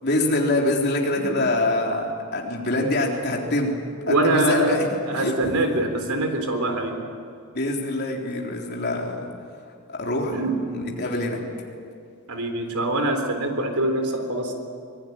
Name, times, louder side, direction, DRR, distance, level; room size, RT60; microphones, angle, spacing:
voice 1, 0.0-3.7 4.1-5.6 7.5-9.2 9.9-10.4 10.7-11.4, left 1 dB, 45° left, -1 dB, 3.9 m, -25 dB
voice 2, 1.1-1.5 4.1-7.0 10.3-10.6 12.3-14.5, right 1 dB, 85° right, 5 dB, 3.8 m, -24 dB
24.5 x 19.5 x 9.9 m, 2.3 s
head